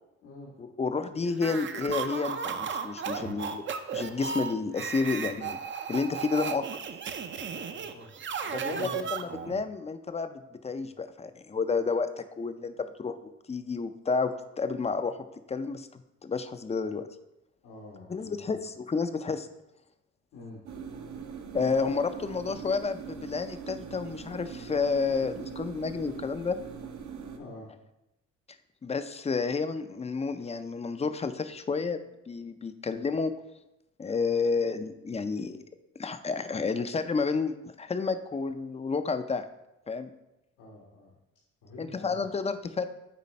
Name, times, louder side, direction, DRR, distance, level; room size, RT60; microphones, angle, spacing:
voice 1, 0.6-3.6 3.9-5.6 5.9-6.7 8.5-15.2 15.5-17.1 18.1-19.5 21.5-26.6 28.8-32.0 32.3-33.3 34.0-35.6 36.0-39.5 39.9-40.1 41.8-42.9, left 4 dB, 20° left, 10 dB, 0.5 m, -30 dB
sound 1, 1.3-9.6, right 6 dB, 40° right, 0.6 m, -35 dB
voice 2, 7.5-8.1 8.4-9.0 17.6-18.5 20.3-20.6 27.4-27.7 40.6-41.1 41.6-42.3, left 2 dB, 85° left, -5 dB, 1.6 m, -46 dB
sound 2, 20.7-27.4, right 6 dB, 65° right, 1.0 m, -42 dB
8.4 x 3.1 x 5.3 m, 0.90 s
cardioid pair, 90°, 30 cm